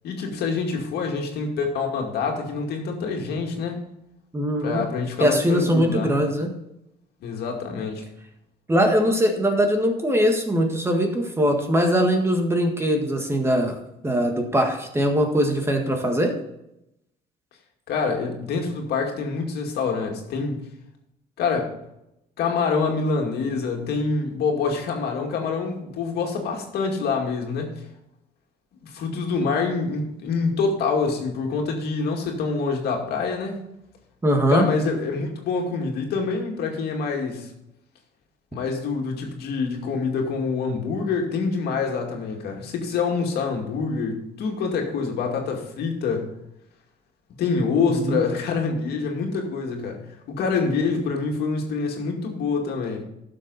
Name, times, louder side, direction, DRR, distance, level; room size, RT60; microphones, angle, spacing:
voice 1, 0.0-3.8 4.6-6.1 7.2-8.0 17.9-20.6 21.4-21.7 22.4-27.7 28.8-33.6 34.5-37.5 38.5-46.3 47.4-50.0 50.3-53.0, left 4 dB, 70° left, 1 dB, 2.3 m, -26 dB
voice 2, 4.3-4.8 5.2-6.5 8.7-13.8 14.0-16.3 29.4-29.6 34.2-34.7 47.9-48.2, equal, 15° right, 3 dB, 1.6 m, -21 dB
12.0 x 7.0 x 4.1 m, 0.83 s
cardioid pair, 110°, 17 cm